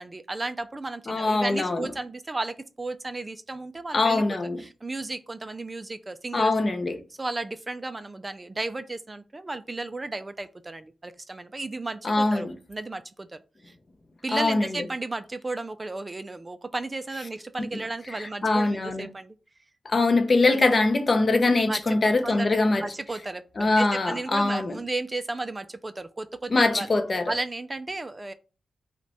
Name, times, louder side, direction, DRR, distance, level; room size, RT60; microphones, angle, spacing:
voice 1, 0.0-4.2 4.6-6.5 7.2-13.3 13.6-13.7 14.2-19.3 21.7-22.5 22.8-26.9 27.3-28.3, right 2 dB, 25° right, 0.3 m, -34 dB
voice 2, 1.1-1.9 3.9-4.6 6.3-7.0 12.0-12.5 14.3-14.8 18.1-19.1 19.8-22.8 23.6-24.8 26.5-27.3, left 2 dB, 35° left, 0.6 m, -23 dB
5.8 x 2.2 x 4.1 m
wide cardioid pair, 115°, 0 cm